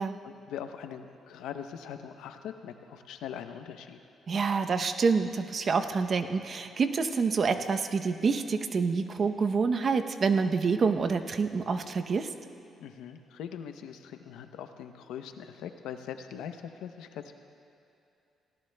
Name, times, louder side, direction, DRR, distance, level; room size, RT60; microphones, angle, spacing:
voice 1, 0.2-4.0 12.8-17.3, left 8 dB, 90° left, 8 dB, 0.6 m, -41 dB
voice 2, 4.3-12.3, right 5 dB, 45° right, 8 dB, 0.6 m, -27 dB
19.0 x 17.0 x 2.2 m, 2.7 s
cardioid pair, 90°, 0 cm